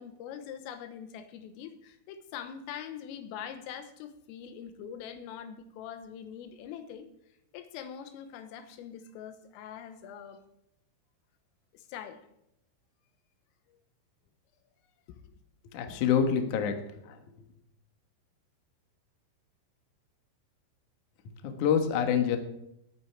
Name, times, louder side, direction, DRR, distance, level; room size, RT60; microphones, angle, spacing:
voice 1, 0.0-7.1 7.5-10.4 11.7-12.2, left 8 dB, 90° left, 3.6 m, -43 dB
voice 2, 15.7-16.7 17.1-17.2 21.4-22.4, left 7 dB, 70° left, 1.9 m, -26 dB
19.5 x 9.1 x 4.7 m
omnidirectional pair, 5.9 m